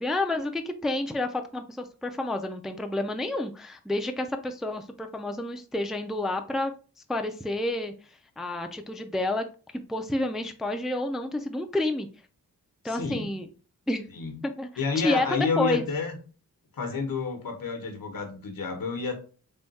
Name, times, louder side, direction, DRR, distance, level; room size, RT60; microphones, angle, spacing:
voice 1, 0.0-6.7 7.1-7.9 8.4-9.4 9.7-12.1 12.8-13.5 13.9-14.1 14.4-15.8, left 2 dB, ahead, 5 dB, 0.3 m, -29 dB
voice 2, 12.8-13.3 14.1-14.4 14.8-16.2 16.7-19.2, left 5 dB, 80° left, 5 dB, 0.9 m, -30 dB
3.5 x 2.2 x 4.0 m, 0.37 s
wide cardioid pair, 125°, 34 cm